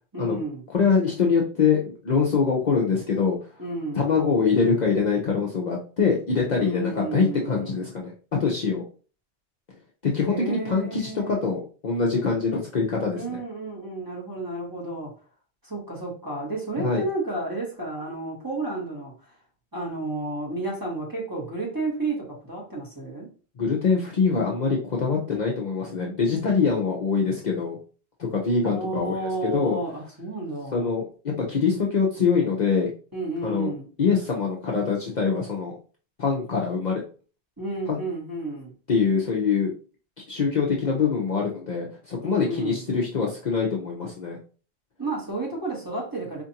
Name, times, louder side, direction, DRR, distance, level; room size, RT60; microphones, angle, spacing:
voice 1, 0.1-0.6 3.6-4.1 6.6-7.9 10.3-11.5 13.1-15.1 15.6-19.1 19.7-23.3 28.6-30.9 33.1-33.9 37.6-38.7 42.2-42.8 45.0-46.4, right 2 dB, 20° right, -3 dB, 1.2 m, -31 dB
voice 2, 0.7-3.4 3.9-8.1 8.4-8.8 10.0-13.4 16.8-17.0 23.6-27.8 28.2-29.8 30.7-32.9 33.4-33.7 34.0-35.7 36.2-37.0 37.9-38.0 38.9-39.7 40.3-44.4, left 5 dB, 50° left, -2 dB, 0.7 m, -24 dB
4.4 x 2.5 x 2.8 m, 0.38 s
omnidirectional pair, 1.1 m